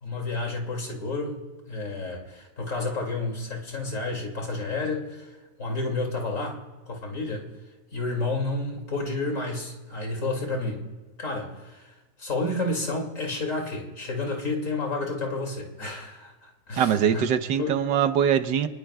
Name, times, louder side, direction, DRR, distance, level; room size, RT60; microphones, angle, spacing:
voice 1, 0.0-5.3 5.6-7.5 7.9-10.9 11.2-11.9 12.2-17.3 17.6-17.8, left 2 dB, 50° left, 1 dB, 2.7 m, -30 dB
voice 2, 16.8-18.7, right 8 dB, 85° right, 10 dB, 1.4 m, -22 dB
27.5 x 19.5 x 2.3 m, 1.2 s
omnidirectional pair, 1.8 m